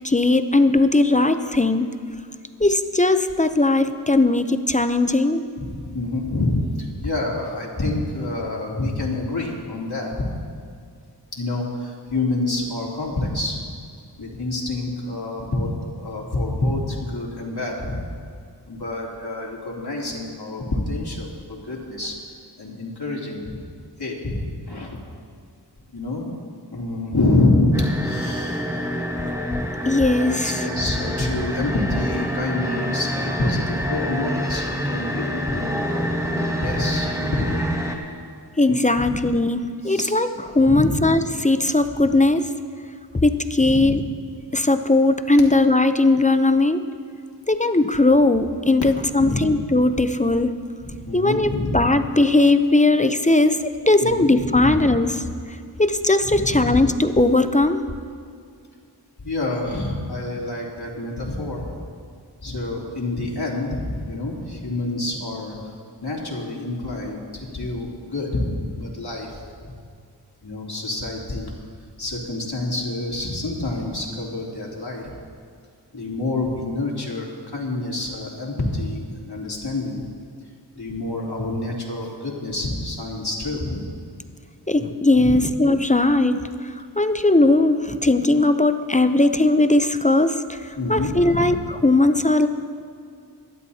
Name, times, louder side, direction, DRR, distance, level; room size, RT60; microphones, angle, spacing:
voice 1, 0.0-1.9 2.6-5.5 29.9-30.5 38.6-42.5 43.1-44.0 44.5-46.9 47.5-50.5 51.1-55.2 55.8-57.9 84.7-92.5, left 2 dB, 20° left, 9 dB, 0.6 m, -19 dB
voice 2, 5.6-10.3 11.3-13.6 14.2-18.1 18.7-22.1 22.6-23.6 24.0-25.0 25.9-26.3 26.7-28.9 29.6-29.8 30.4-37.7 39.0-39.1 39.8-40.1 40.6-41.0 43.6-43.9 49.2-49.5 50.8-51.9 54.0-54.8 56.2-56.8 59.2-61.7 62.4-65.6 66.0-69.7 70.4-71.5 72.0-75.1 75.9-80.0 80.7-83.9 85.2-85.3 90.8-91.5, left 2 dB, 65° left, -3 dB, 3.0 m, -27 dB
sound 1, 27.7-38.0, equal, 5° right, 1.6 m, -27 dB
23.0 x 11.5 x 2.8 m, 2.3 s
wide cardioid pair, 45°, 42 cm